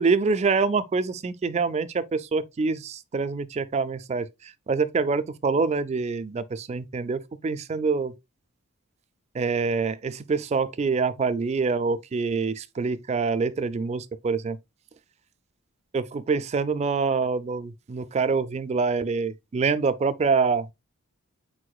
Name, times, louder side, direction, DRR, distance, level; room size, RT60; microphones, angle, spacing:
voice 1, 0.0-8.1 9.3-14.6 15.9-20.7, right 4 dB, 30° right, 0.3 m, -26 dB
4.7 x 4.3 x 2.2 m
head